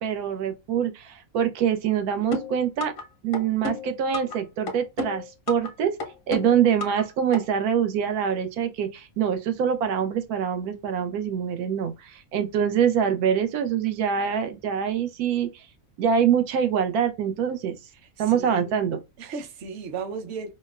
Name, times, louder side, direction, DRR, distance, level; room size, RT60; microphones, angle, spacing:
voice 1, 0.0-2.9 3.2-5.9 6.3-15.6 16.0-17.7 18.2-19.0, right 8 dB, 85° right, 1.1 m, -24 dB
sound 1, 2.3-3.0 3.3-4.4 4.7-5.7 6.0-7.0 7.3-7.4, left 3 dB, 60° left, 0.6 m, -31 dB
voice 2, 18.2-18.8 19.2-20.5, right 5 dB, 55° right, 0.8 m, -35 dB
4.2 x 2.0 x 2.3 m
omnidirectional pair, 1.5 m